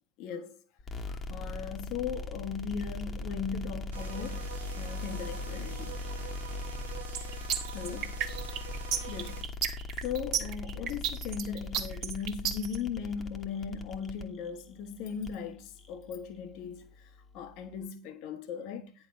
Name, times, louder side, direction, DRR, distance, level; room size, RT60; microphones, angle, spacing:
voice 1, 0.2-0.6 1.0-4.4 4.7-6.0 7.7-8.1 9.1-9.5 10.0-16.9 17.3-18.9, left 7 dB, 50° left, 1.3 m, -38 dB
sound 1, 0.8-17.9, left 2 dB, 25° left, 1.4 m, -41 dB
sound 2, 3.9-9.4, right 7 dB, 75° right, 1.2 m, -45 dB
sound 3, 7.1-12.8, right 9 dB, 50° right, 1.7 m, -32 dB
9.9 x 4.9 x 6.3 m
figure-of-eight pair, 75°, 0 cm